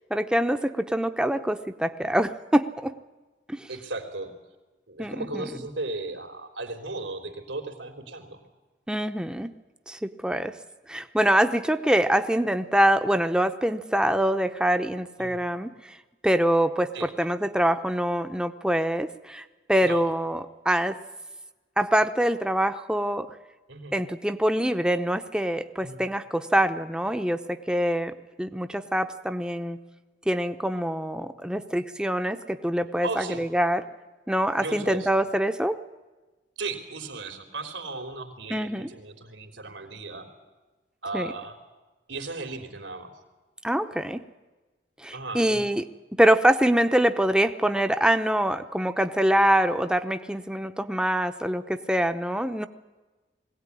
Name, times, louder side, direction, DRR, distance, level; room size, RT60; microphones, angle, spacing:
voice 1, 0.1-2.9 3.5-3.7 5.0-5.5 8.9-9.5 9.9-10.5 10.9-16.0 16.2-21.0 21.8-23.3 23.9-29.8 30.3-33.8 34.3-35.8 38.5-38.9 41.1-41.3 43.6-44.2 45.0-45.8 46.2-52.7, right 1 dB, 5° right, 8 dB, 0.7 m, -24 dB
voice 2, 3.7-4.3 4.9-8.4 15.2-15.4 16.9-17.1 19.8-20.1 23.7-23.9 25.8-26.0 33.0-33.4 34.6-35.1 36.6-40.3 41.0-41.6 42.1-43.1 45.1-45.6, right 3 dB, 90° right, 5 dB, 3.6 m, -36 dB
21.5 x 17.0 x 9.9 m, 1.2 s
head